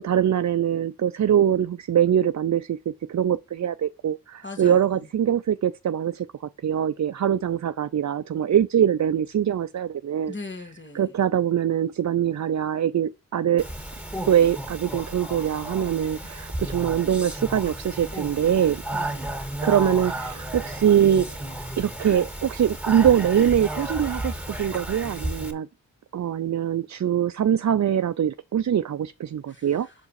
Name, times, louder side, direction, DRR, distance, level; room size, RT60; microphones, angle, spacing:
voice 1, 0.0-10.3 10.9-13.7 14.3-18.8 19.6-21.5 21.8-25.7 26.1-29.9, right 9 dB, 55° right, 0.5 m, -23 dB
voice 2, 4.4-4.8 10.3-11.1 18.9-19.4 29.5-29.9, left 3 dB, 30° left, 2.0 m, -39 dB
Speech, 13.6-25.5, right 1 dB, 5° right, 2.3 m, -33 dB
6.7 x 4.7 x 4.8 m
cardioid pair, 50°, 35 cm